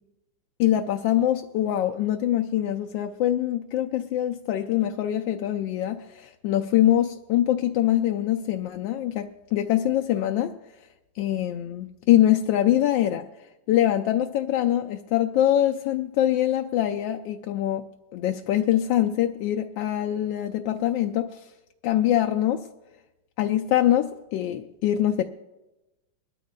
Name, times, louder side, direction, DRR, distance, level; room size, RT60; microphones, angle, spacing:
voice 1, 0.6-10.6 11.2-13.3 13.7-21.5 21.8-22.7 23.4-25.2, left 12 dB, 75° left, 4 dB, 1.2 m, -24 dB
22.5 x 13.0 x 2.2 m, 1.0 s
omnidirectional pair, 2.3 m